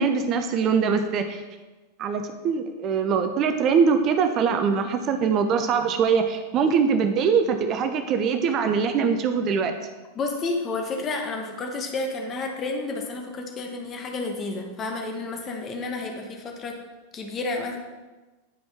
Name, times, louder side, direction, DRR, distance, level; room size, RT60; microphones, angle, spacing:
voice 1, 0.0-1.4 2.0-9.8, right 6 dB, 35° right, 7 dB, 0.6 m, -22 dB
voice 2, 10.1-16.8 17.1-18.0, left 3 dB, 25° left, 3 dB, 1.1 m, -31 dB
9.5 x 5.1 x 3.5 m, 1.2 s
figure-of-eight pair, 90°, 0 cm